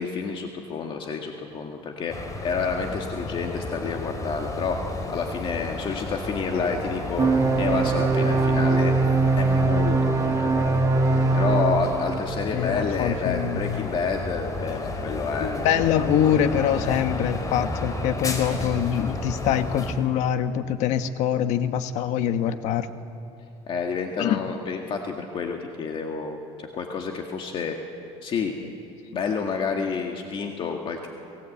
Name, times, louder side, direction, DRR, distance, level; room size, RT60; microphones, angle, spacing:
voice 1, 0.0-2.1 2.4-4.8 5.1-7.3 7.6-8.9 9.4-10.9 11.3-15.6 16.8-17.1 23.7-27.8 28.2-28.6 29.1-31.1, left 5 dB, 45° left, 3 dB, 1.9 m, -29 dB
sound 1, 2.1-19.9, left 2 dB, 30° left, 3.4 m, -32 dB
sound 2, 7.2-12.2, right 3 dB, 25° right, 1.2 m, -22 dB
voice 2, 12.5-13.9 15.4-22.9 24.2-24.4, left 9 dB, 75° left, 10 dB, 1.3 m, -24 dB
27.5 x 18.0 x 8.5 m, 2.9 s
cardioid pair, 130°, 12 cm